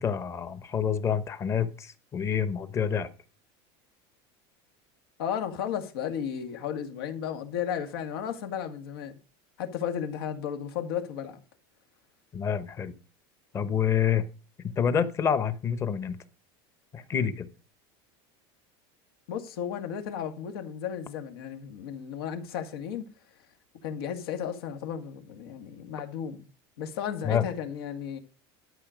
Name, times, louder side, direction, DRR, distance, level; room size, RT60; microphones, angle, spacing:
voice 1, 0.0-3.1 12.3-12.9 13.5-14.2 14.8-16.2 16.9-17.5 27.2-27.5, left 8 dB, 25° left, 0.9 m, -27 dB
voice 2, 5.2-9.1 9.6-11.4 13.6-13.8 19.3-23.1 23.8-26.5 26.8-28.2, left 8 dB, 90° left, 2.0 m, -34 dB
12.5 x 5.9 x 5.1 m
supercardioid pair, 160°, 12 cm